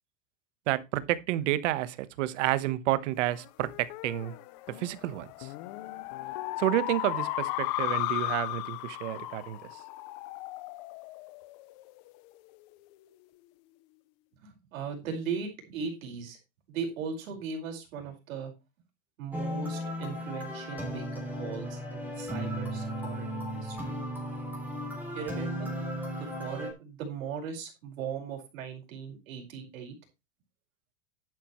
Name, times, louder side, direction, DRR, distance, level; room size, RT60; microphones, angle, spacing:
voice 1, 0.7-4.3 4.7-5.5 6.6-9.6, right 15 dB, 65° right, 1.2 m, -30 dB
sound 1, 3.3-12.1, left 18 dB, 35° left, 0.5 m, -36 dB
voice 2, 14.4-16.4 16.7-18.5 19.2-24.0 25.1-25.7 26.2-30.0, right 6 dB, 90° right, 5.1 m, -38 dB
sound 2, 19.3-26.7, equal, 5° right, 3.3 m, -35 dB
11.0 x 9.5 x 3.1 m
supercardioid pair, 165°, 39 cm